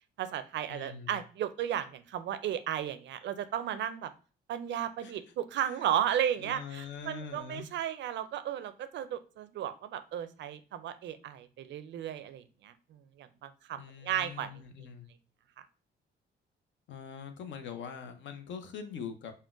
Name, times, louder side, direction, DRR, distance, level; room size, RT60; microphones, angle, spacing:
voice 1, 0.2-4.1 4.5-14.5, right 10 dB, 65° right, 11 dB, 0.4 m, -34 dB
voice 2, 0.7-1.2 5.0-5.1 6.4-7.7 13.8-15.1 16.9-19.3, left 6 dB, 70° left, 7 dB, 0.6 m, -43 dB
3.7 x 2.1 x 2.4 m, 0.36 s
cardioid pair, 90°, 20 cm